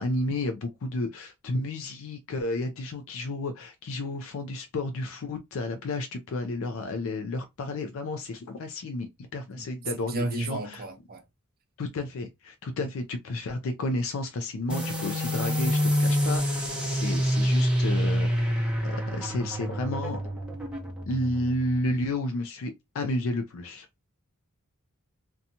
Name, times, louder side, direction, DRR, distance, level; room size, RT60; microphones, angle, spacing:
voice 1, 0.0-10.8 11.8-20.2 21.1-23.9, left 2 dB, 65° left, 0.4 m, -32 dB
voice 2, 10.1-11.2, right 2 dB, 45° right, 0.6 m, -32 dB
sound 1, 14.7-21.9, equal, 5° right, 0.7 m, -27 dB
2.7 x 2.3 x 2.6 m
head